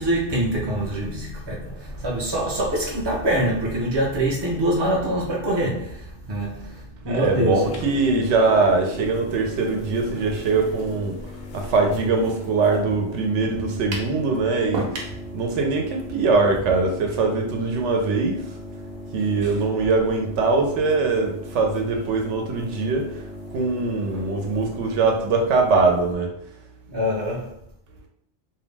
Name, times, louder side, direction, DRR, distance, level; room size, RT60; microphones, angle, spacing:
voice 1, 0.0-7.6 19.4-19.6 26.9-27.6, right 1 dB, 45° right, 0.3 m, -25 dB
voice 2, 7.0-18.5 19.1-23.2 23.5-26.4, right 3 dB, 90° right, 0.9 m, -22 dB
sound 1, 7.6-26.1, left 1 dB, 60° left, 0.6 m, -38 dB
sound 2, 13.9-14.2 14.7-15.2, right 3 dB, 65° right, 0.8 m, -29 dB
2.5 x 2.0 x 3.2 m
omnidirectional pair, 1.2 m